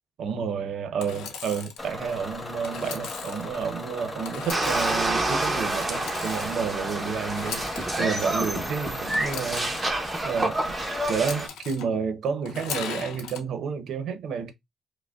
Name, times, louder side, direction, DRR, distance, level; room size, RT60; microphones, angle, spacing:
voice 1, 0.2-10.0 10.2-10.7 11.1-14.5, right 6 dB, 70° right, 0.7 m, -30 dB
Engine / Sawing, 1.0-1.8 2.6-3.5 4.2-5.1 5.8-6.7 7.3-8.1 9.1-9.9 11.1-11.8 12.4-13.4, left 6 dB, 90° left, 0.6 m, -38 dB
Bus / Engine, 1.8-11.1, left 1 dB, 20° left, 1.0 m, -37 dB
sound 1, 4.5-11.5, right 2 dB, 20° right, 0.9 m, -28 dB
4.8 x 2.1 x 2.3 m
cardioid pair, 90°, 0 cm